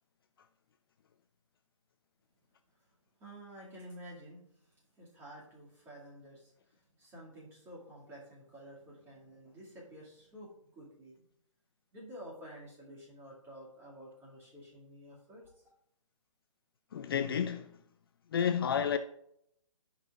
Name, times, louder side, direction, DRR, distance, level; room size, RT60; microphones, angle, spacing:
voice 1, 3.2-4.4 5.0-11.2 11.9-15.5, equal, 15° right, 2.2 m, -51 dB
voice 2, 16.9-17.8 18.3-19.0, left 8 dB, 45° left, 0.4 m, -30 dB
13.5 x 5.6 x 2.4 m
hypercardioid pair, 145°, 17 cm